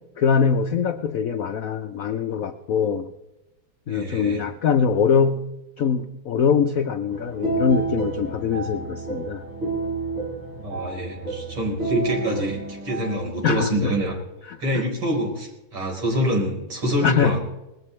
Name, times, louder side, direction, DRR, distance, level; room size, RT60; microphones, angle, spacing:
voice 1, 0.2-3.1 3.9-5.5 5.8-9.4 13.4-13.9 14.5-14.6 17.0-17.4, left 6 dB, 80° left, 7 dB, 0.7 m, -22 dB
voice 2, 3.9-4.4 7.4-7.5 10.4-14.1 14.6-17.4, equal, 80° right, 0 dB, 5.3 m, -26 dB
sound 1, 7.1-13.2, right 3 dB, 65° right, 4.9 m, -30 dB
19.5 x 16.0 x 3.3 m, 0.98 s
omnidirectional pair, 2.4 m